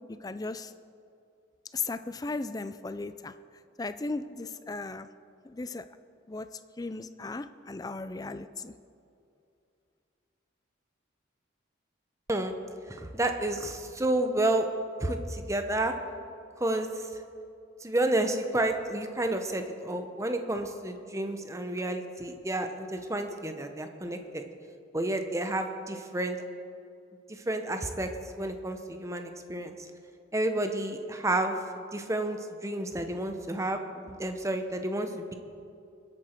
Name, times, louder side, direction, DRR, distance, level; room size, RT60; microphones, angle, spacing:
voice 1, 0.2-0.7 1.7-3.3 3.8-5.1 5.5-5.8 6.3-6.5 6.8-8.7, left 3 dB, 20° left, 12 dB, 0.4 m, -36 dB
voice 2, 12.9-14.7 15.0-15.9 16.6-17.2 17.8-24.4 24.9-26.4 27.3-28.1 28.4-29.9 30.3-35.3, right 1 dB, 15° right, 6 dB, 0.8 m, -30 dB
22.0 x 8.8 x 4.5 m, 2.6 s
head